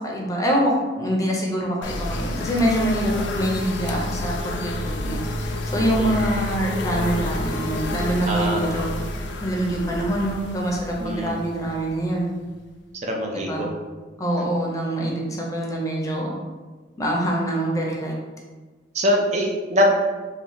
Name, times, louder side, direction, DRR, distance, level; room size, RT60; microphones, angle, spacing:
voice 1, 0.0-8.9 9.4-10.8 11.0-12.3 13.5-13.6 14.2-16.3 17.0-18.1, right 1 dB, 20° left, -2 dB, 0.6 m, -25 dB
sound 1, 1.8-12.4, left 1 dB, 65° left, 0.4 m, -29 dB
voice 2, 8.3-8.9 11.0-11.4 13.0-13.7 18.9-19.9, equal, 40° right, 1 dB, 0.4 m, -23 dB
3.1 x 2.2 x 3.9 m, 1.3 s
head